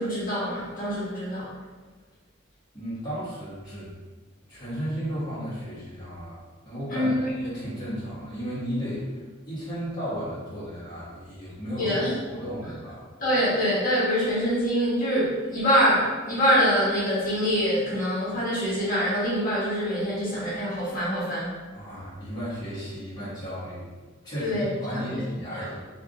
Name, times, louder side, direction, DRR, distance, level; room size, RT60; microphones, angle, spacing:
voice 1, 0.0-1.5 6.9-7.3 11.8-12.1 13.2-21.5 24.4-25.2 25.5-25.7, equal, 45° left, -10 dB, 1.3 m, -25 dB
voice 2, 2.7-3.9 4.5-11.9 12.2-13.0 21.7-23.9 24.2-25.9, equal, 20° left, -11 dB, 1.4 m, -34 dB
3.5 x 2.6 x 3.7 m, 1.4 s
head